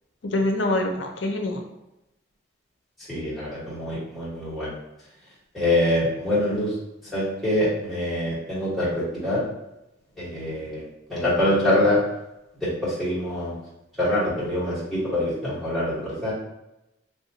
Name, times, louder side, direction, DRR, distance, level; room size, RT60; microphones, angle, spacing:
voice 1, 0.2-1.6, left 1 dB, 70° left, 4 dB, 0.5 m, -25 dB
voice 2, 3.1-4.7 5.5-6.7 7.1-9.4 10.2-10.8 11.1-12.0 12.6-13.5 14.0-16.3, left 1 dB, ahead, -10 dB, 1.2 m, -24 dB
3.4 x 2.6 x 2.7 m, 0.91 s
head